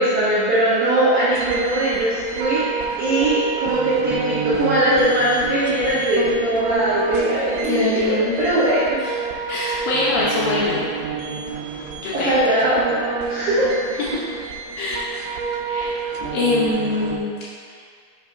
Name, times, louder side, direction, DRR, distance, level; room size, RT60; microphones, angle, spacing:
voice 1, 0.0-2.7 3.0-9.0 12.1-13.7, right 1 dB, 75° right, -11 dB, 1.8 m, -20 dB
sound 1, 1.3-17.2, right 5 dB, 90° right, 2.8 m, -28 dB
voice 2, 7.6-8.4 8.6-8.7 9.0-9.1 9.5-10.8 12.0-12.4 14.1-14.3 14.7-15.0 15.7-15.9 16.2-17.3, left 2 dB, 75° left, -7 dB, 2.3 m, -23 dB
7.2 x 5.8 x 2.7 m, 2.1 s
omnidirectional pair, 5.0 m